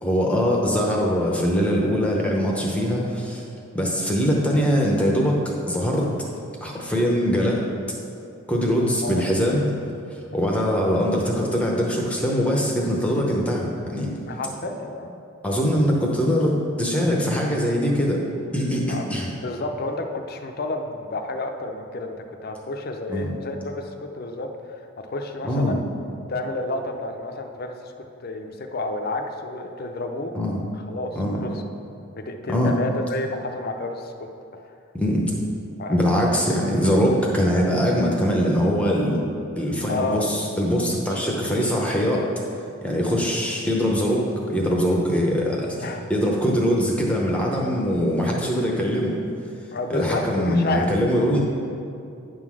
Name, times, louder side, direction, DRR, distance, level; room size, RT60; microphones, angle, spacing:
voice 1, 0.0-3.4 3.7-5.4 5.7-6.1 6.6-7.7 8.5-9.7 10.1-14.1 15.4-18.2 18.5-19.3 23.1-23.3 25.4-25.8 30.3-30.6 31.2-31.4 32.5-32.7 34.9-35.2 35.9-39.2 39.6-42.3 42.8-45.8 46.1-49.2 49.9-51.4, equal, 5° left, -2 dB, 0.7 m, -22 dB
voice 2, 14.3-15.2 18.9-19.1 19.4-22.2 22.4-25.8 26.3-30.3 30.7-31.6 32.2-34.3 34.5-34.8 35.8-36.2 39.9-40.3 41.1-41.2 41.5-41.7 45.8-46.1 49.7-50.9, left 2 dB, 45° left, 4 dB, 0.5 m, -30 dB
9.5 x 3.9 x 6.2 m, 2.6 s
head